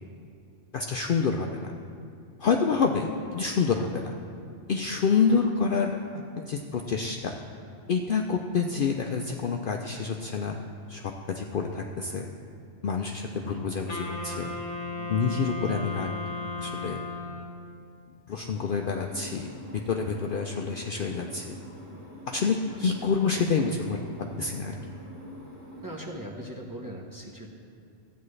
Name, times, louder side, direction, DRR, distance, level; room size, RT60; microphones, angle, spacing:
voice 1, 0.7-1.7 2.4-4.1 4.7-7.4 7.9-12.3 12.8-14.6 15.1-16.1 16.6-17.0 18.3-19.5 19.9-21.6 22.3-24.0 24.4-24.7, left 5 dB, 60° left, 2 dB, 0.6 m, -28 dB
Wind instrument woodwind instrument, 13.9-17.7, left 2 dB, 35° left, 0.9 m, -35 dB
sound 1, 18.5-26.1, left 1 dB, 40° right, 2.7 m, -45 dB
voice 2, 22.7-23.1 25.8-27.5, right 1 dB, 20° right, -3 dB, 0.8 m, -40 dB
14.5 x 9.1 x 3.2 m, 2.5 s
omnidirectional pair, 1.3 m